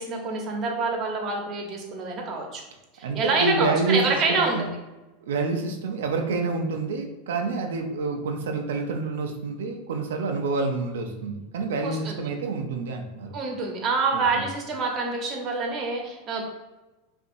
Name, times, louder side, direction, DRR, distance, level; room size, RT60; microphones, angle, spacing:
voice 1, 0.0-2.6 2.9-4.7 11.8-12.3 13.3-16.4, right 3 dB, 40° right, 1 dB, 1.1 m, -27 dB
voice 2, 3.0-4.0 4.3-4.6 5.2-13.3 14.1-14.4, right 3 dB, 90° right, 3 dB, 0.6 m, -28 dB
5.6 x 2.7 x 2.7 m, 1.1 s
supercardioid pair, 125°, 0 cm